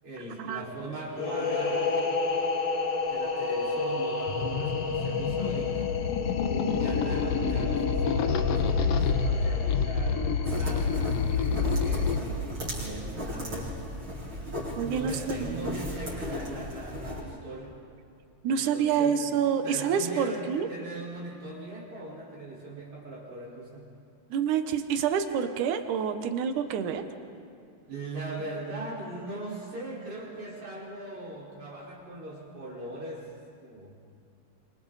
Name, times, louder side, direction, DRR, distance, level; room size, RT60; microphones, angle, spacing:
voice 1, 0.0-2.0 3.1-6.0 6.7-13.7 14.8-17.7 18.5-19.2 19.6-23.9 27.9-33.3 33.6-33.9, right 2 dB, 65° right, -5 dB, 6.4 m, -40 dB
sound 1, 1.1-10.7, left 4 dB, 40° left, 1.4 m, -31 dB
sound 2, 4.3-12.2, left 6 dB, 65° left, 1.7 m, -27 dB
sound 3, 10.4-17.2, equal, 40° right, 7.8 m, -35 dB
voice 2, 14.8-15.8 18.4-20.7 24.3-27.1, right 7 dB, 80° right, 8 dB, 2.6 m, -28 dB
29.0 x 27.0 x 4.1 m, 2.5 s
omnidirectional pair, 3.5 m